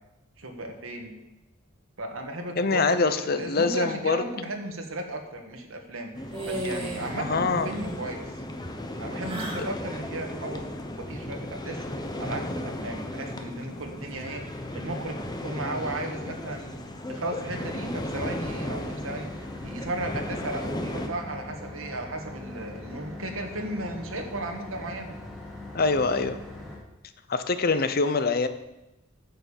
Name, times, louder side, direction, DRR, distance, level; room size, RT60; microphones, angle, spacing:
voice 1, 0.4-1.2 2.0-8.2 9.0-11.8 12.2-16.8 17.1-19.3 19.6-25.1, right 2 dB, 80° right, 3 dB, 1.7 m, -35 dB
voice 2, 2.6-4.2 7.2-7.7 25.7-26.4 27.3-28.5, left 4 dB, 45° left, 11 dB, 0.7 m, -24 dB
sound 1, 6.1-21.1, left 1 dB, 20° left, 0.9 m, -35 dB
sound 2, 6.3-7.1 7.4-8.0 9.2-9.7, right 1 dB, 25° right, 2.1 m, -34 dB
sound 3, 18.4-26.8, left 2 dB, ahead, 2.7 m, -41 dB
9.2 x 6.8 x 7.3 m, 0.97 s
head